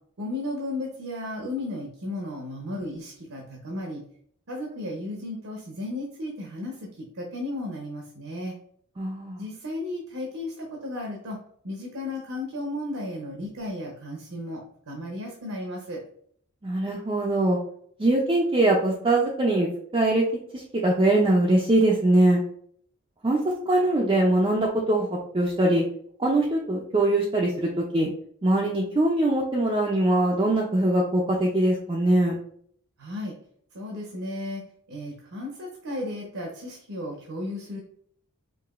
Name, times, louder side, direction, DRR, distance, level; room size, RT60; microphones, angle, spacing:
voice 1, 0.2-4.0 4.5-8.5 9.4-11.4 11.6-16.0 33.0-33.3 33.7-34.6 34.9-37.8, left 1 dB, 70° right, 0 dB, 0.7 m, -34 dB
voice 2, 9.0-9.4 16.6-17.6 18.0-19.7 19.9-20.2 20.5-22.4 23.2-25.1 25.3-25.8 26.2-28.1 28.4-32.4, right 1 dB, 20° right, -3 dB, 0.4 m, -22 dB
4.8 x 2.6 x 2.4 m, 0.63 s
head